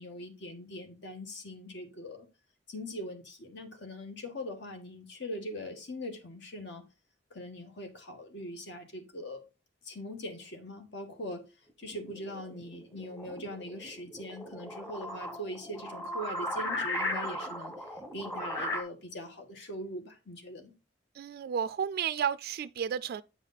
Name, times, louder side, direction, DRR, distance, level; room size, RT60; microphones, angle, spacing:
voice 1, 0.0-2.3 2.7-6.8 7.3-9.4 9.8-11.4 11.8-20.7, left 1 dB, 65° left, 1.6 m, -41 dB
sound 1, 11.8-18.8, left 1 dB, 15° left, 1.5 m, -37 dB
voice 2, 21.1-23.2, right 8 dB, 55° right, 0.3 m, -32 dB
9.0 x 5.0 x 4.0 m
head